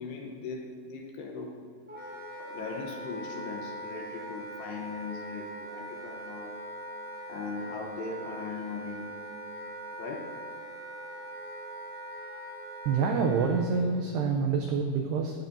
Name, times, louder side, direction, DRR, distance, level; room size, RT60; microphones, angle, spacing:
voice 1, 0.0-1.6 2.4-6.6 7.3-9.1 10.0-10.3, left 4 dB, 70° left, 0 dB, 2.7 m, -39 dB
Wind instrument woodwind instrument, 1.9-13.7, right 1 dB, 5° right, 2.3 m, -41 dB
voice 2, 12.9-15.4, right 5 dB, 85° right, 2 dB, 2.3 m, -27 dB
16.5 x 13.0 x 2.7 m, 2.4 s
omnidirectional pair, 5.7 m